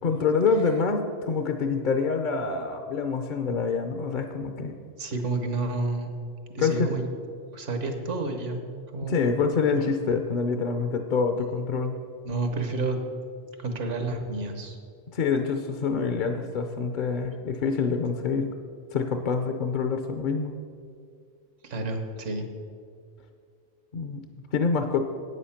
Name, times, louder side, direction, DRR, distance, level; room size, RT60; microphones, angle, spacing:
voice 1, 0.0-4.7 6.6-6.9 9.0-12.0 15.1-18.5 18.9-20.6 23.9-24.2 24.5-25.1, left 5 dB, 50° left, 6 dB, 0.6 m, -26 dB
voice 2, 5.0-6.2 6.5-7.0 7.5-9.3 12.2-13.0 13.6-14.8 21.6-22.5, right 3 dB, 75° right, 5 dB, 1.4 m, -30 dB
8.9 x 8.2 x 5.7 m, 2.2 s
omnidirectional pair, 1.3 m